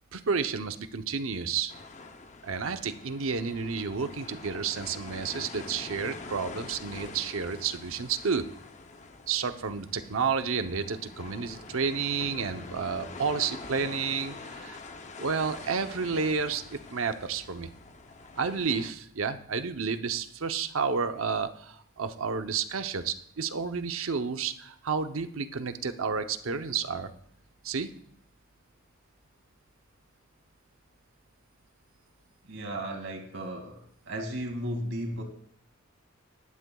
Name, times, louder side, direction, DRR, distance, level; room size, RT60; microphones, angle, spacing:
voice 1, 0.1-1.7 2.4-8.4 9.3-14.8 15.2-17.7 18.4-27.1 27.6-27.9, right 5 dB, 80° right, 8 dB, 0.8 m, -31 dB
sound 1, 1.7-18.9, left 3 dB, 35° left, 0.7 m, -45 dB
voice 2, 32.5-33.8 34.1-35.2, right 1 dB, 65° right, 3 dB, 2.3 m, -34 dB
18.0 x 11.0 x 2.3 m, 0.66 s
head